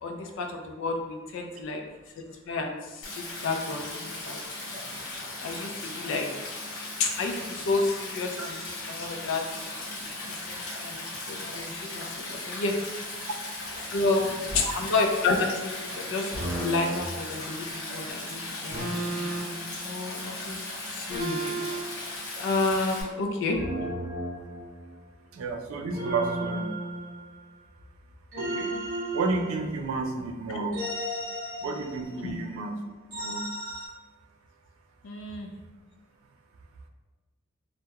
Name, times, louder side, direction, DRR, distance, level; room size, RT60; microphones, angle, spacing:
voice 1, 0.0-1.8 2.5-3.1 3.4-4.4 5.4-6.3 7.0-9.4 10.2-12.7 13.9-23.6 30.5-30.6 32.2-32.3 35.0-35.5, left 3 dB, 65° left, 3 dB, 0.4 m, -31 dB
Stream, 3.0-23.0, left 2 dB, 85° left, 0.8 m, -37 dB
sound 1, 14.5-14.7 16.3-17.0 18.7-19.6 21.1-21.8 23.5-25.0 25.9-27.5 28.3-30.0 30.7-32.2 33.1-33.9, right 1 dB, 45° right, 0.8 m, -34 dB
voice 2, 25.3-26.6 28.4-28.8 29.1-30.8 31.6-32.8 33.1-33.5 35.2-35.3, right 3 dB, 80° right, 4 dB, 0.4 m, -31 dB
2.3 x 2.1 x 2.8 m, 1.2 s
head